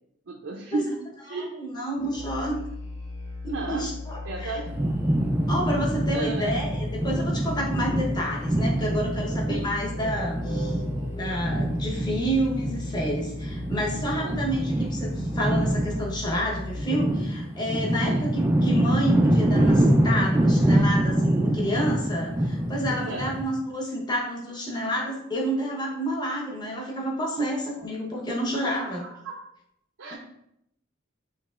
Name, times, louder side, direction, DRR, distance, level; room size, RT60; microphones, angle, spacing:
voice 1, 0.3-1.7 3.5-3.9 4.2-4.9 6.1-6.7 9.5-9.7 14.1-14.4 18.1-18.2 22.9-23.3 27.4-27.5 28.6-29.4 30.0-30.1, right 3 dB, 70° right, -1 dB, 0.5 m, -34 dB
voice 2, 1.3-2.6 3.4-4.6 5.5-10.8 11.1-29.0, equal, 20° left, -2 dB, 0.9 m, -29 dB
Musical instrument, 2.0-17.0, left 2 dB, 60° left, 1.4 m, -37 dB
sound 1, 4.7-23.4, right 1 dB, 10° right, 0.3 m, -25 dB
6.6 x 2.9 x 2.4 m, 0.78 s
head